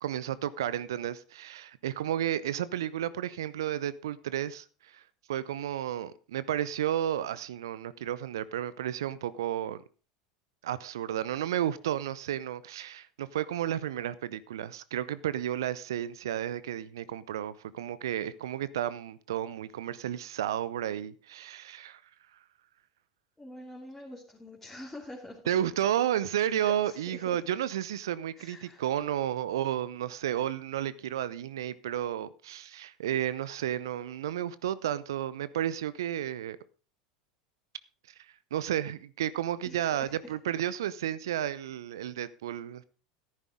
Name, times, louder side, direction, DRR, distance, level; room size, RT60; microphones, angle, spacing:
voice 1, 0.0-5.0 5.3-9.8 10.6-22.0 25.5-36.6 38.5-42.8, right 11 dB, 70° right, 0.7 m, -32 dB
voice 2, 23.4-25.4 26.5-27.4 28.4-28.8 39.6-40.3, left 1 dB, 10° left, 3.0 m, -46 dB
13.5 x 11.0 x 3.6 m
figure-of-eight pair, 80°, 2 cm